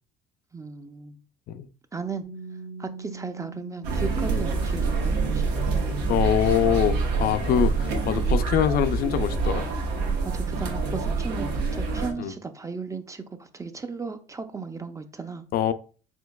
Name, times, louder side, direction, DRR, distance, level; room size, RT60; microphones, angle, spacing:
voice 1, 0.5-1.2 1.9-2.2 2.8-5.4 7.5-7.6 10.2-15.4, right 4 dB, 20° right, 0.4 m, -35 dB
Piano, 2.2-9.5, right 4 dB, 40° right, 0.9 m, -45 dB
sound 1, 3.8-12.1, right 4 dB, 90° right, 0.9 m, -26 dB
voice 2, 6.1-9.7 12.2-12.3 15.5-15.7, left 10 dB, 60° left, 0.4 m, -24 dB
4.4 x 3.9 x 2.2 m
cardioid pair, 110°, 17 cm